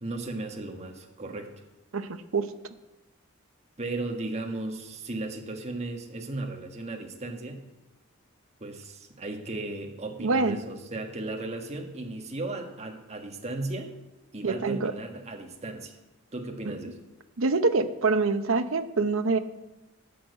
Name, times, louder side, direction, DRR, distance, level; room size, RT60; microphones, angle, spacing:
voice 1, 0.0-1.5 3.8-7.7 8.6-14.0 14.3-16.0 16.3-17.0, right 2 dB, 30° right, 3 dB, 1.4 m, -36 dB
voice 2, 1.9-2.5 10.2-10.6 14.4-14.9 16.7-16.8 17.4-19.4, right 3 dB, 75° right, 10 dB, 0.8 m, -25 dB
10.0 x 6.4 x 8.0 m, 1.0 s
head